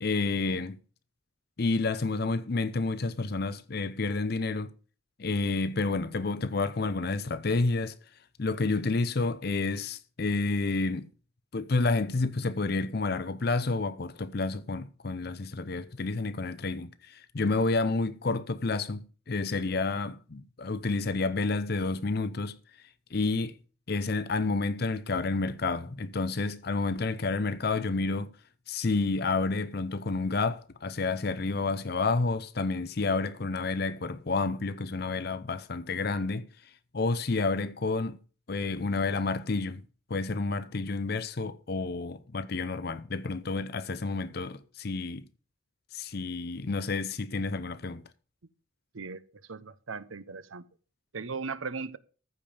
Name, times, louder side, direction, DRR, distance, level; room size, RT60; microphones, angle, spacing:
voice 1, 0.0-0.8 1.6-4.7 5.2-7.9 8.4-11.1 11.5-22.6 23.1-23.6 23.9-28.3 28.7-36.5 36.9-38.2 38.5-39.8 40.1-45.3 45.9-48.0, left 3 dB, 50° left, 0.6 m, -30 dB
voice 2, 49.5-50.7 51.1-52.0, right 4 dB, 80° right, 0.8 m, -37 dB
14.5 x 5.2 x 7.0 m
head